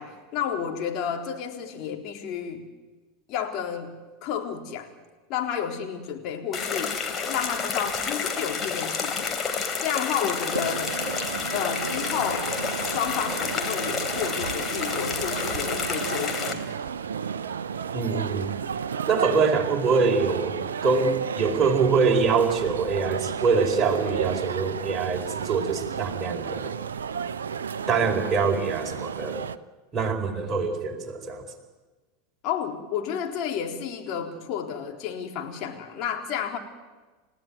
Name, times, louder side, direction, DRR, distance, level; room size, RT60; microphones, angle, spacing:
voice 1, 0.0-2.7 3.3-3.9 4.2-4.9 5.3-7.0 7.3-11.0 11.5-12.5 12.8-16.7 32.4-36.6, left 8 dB, 40° left, 3 dB, 3.9 m, -31 dB
sound 1, 6.5-16.5, left 5 dB, 25° left, 3.4 m, -30 dB
sound 2, 10.5-29.6, right 7 dB, 70° right, 0.8 m, -33 dB
voice 2, 17.9-18.5 19.1-20.5 20.8-26.7 27.9-29.4 29.9-31.4, right 5 dB, 25° right, 2 dB, 4.7 m, -24 dB
30.0 x 16.0 x 9.6 m, 1.3 s
figure-of-eight pair, 85°, 0 cm